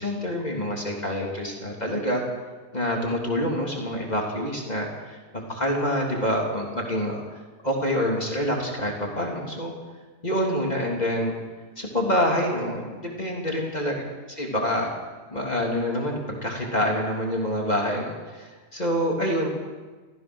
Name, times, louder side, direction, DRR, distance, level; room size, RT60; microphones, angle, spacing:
voice 1, 0.0-2.2 2.7-5.2 5.5-9.7 10.2-11.4 11.8-14.9 15.3-19.5, equal, 25° left, -1 dB, 3.4 m, -27 dB
27.5 x 15.0 x 6.4 m, 1.3 s
omnidirectional pair, 1.7 m